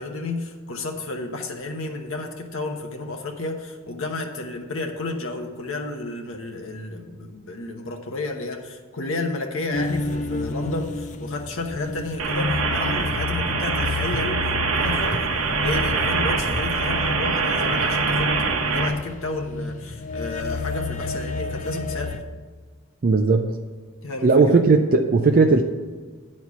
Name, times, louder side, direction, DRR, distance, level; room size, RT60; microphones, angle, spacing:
voice 1, 0.0-15.3 15.6-22.2 24.0-24.6, left 2 dB, 65° left, 3 dB, 1.0 m, -31 dB
sound 1, 9.7-22.2, left 3 dB, 35° left, 0.5 m, -30 dB
sound 2, 12.2-18.9, right 4 dB, 75° right, 1.0 m, -24 dB
voice 2, 23.0-23.6 24.2-25.6, right 3 dB, 40° right, 4 dB, 0.5 m, -17 dB
9.5 x 4.4 x 7.1 m, 1.5 s
head